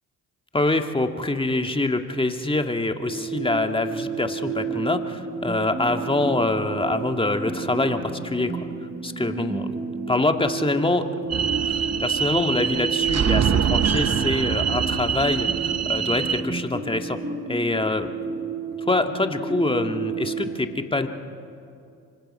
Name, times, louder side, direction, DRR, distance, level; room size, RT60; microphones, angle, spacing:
voice 1, 0.5-8.7 9.0-9.7 10.1-11.1 11.4-17.2 17.5-18.1 18.9-21.1, left 2 dB, 15° left, 6 dB, 1.9 m, -25 dB
sound 1, 3.1-20.6, right 4 dB, 25° right, 4.2 m, -31 dB
sound 2, 11.3-16.4, right 7 dB, 40° right, 1.1 m, -24 dB
27.0 x 24.5 x 5.6 m, 2.5 s
hypercardioid pair, 55°, 40 cm